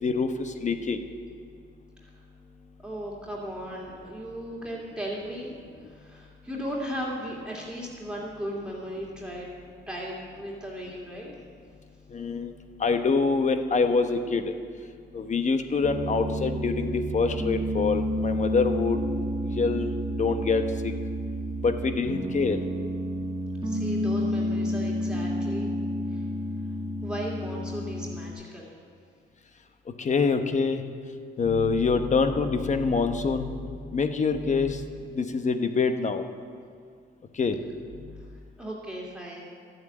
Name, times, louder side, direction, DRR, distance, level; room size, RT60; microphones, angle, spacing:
voice 1, 0.0-1.0 12.1-12.5 12.8-14.5 15.1-19.0 19.6-19.9 20.2-20.9 21.6-22.6 30.0-30.8 31.4-34.8 35.1-36.2 37.4-37.6, left 4 dB, 35° left, 7 dB, 1.0 m, -25 dB
voice 2, 2.8-5.5 5.8-9.5 9.9-11.3 23.6-25.7 26.1-26.2 27.0-28.7 38.6-39.5, equal, 5° right, -4 dB, 2.3 m, -36 dB
Piano, 15.8-28.3, equal, 20° right, 1.4 m, -30 dB
12.0 x 7.9 x 8.6 m, 2.1 s
cardioid pair, 90°, 20 cm